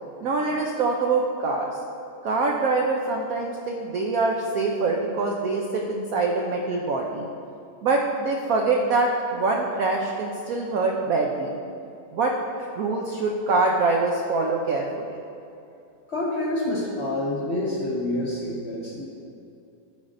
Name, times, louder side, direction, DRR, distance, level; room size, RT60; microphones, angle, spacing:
voice 1, 0.2-1.8 2.2-7.3 7.8-11.6 12.1-12.3 12.8-15.0, right 3 dB, 80° right, 0 dB, 0.7 m, -24 dB
voice 2, 16.1-19.0, left 1 dB, 40° left, -4 dB, 1.0 m, -27 dB
14.5 x 5.2 x 2.6 m, 2.7 s
omnidirectional pair, 2.2 m